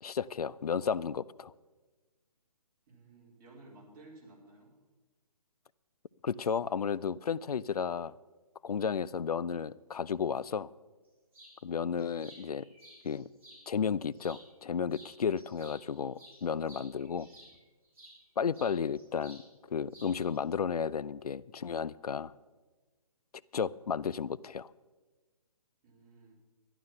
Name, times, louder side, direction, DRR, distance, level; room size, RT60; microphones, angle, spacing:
voice 1, 0.0-1.5 6.2-8.1 8.6-10.7 11.6-12.7 13.0-13.3 13.7-17.3 18.4-19.4 19.7-22.3 23.5-24.7, left 6 dB, 80° left, 0.5 m, -33 dB
voice 2, 2.9-4.7 25.8-26.3, right 2 dB, 35° right, 4.3 m, -55 dB
sound 1, 11.3-11.6 12.0-13.6 14.1-14.7 14.9-18.2 18.5-19.5 19.7-20.4, right 1 dB, 10° right, 4.5 m, -55 dB
12.0 x 11.0 x 5.8 m
hypercardioid pair, 150°, 19 cm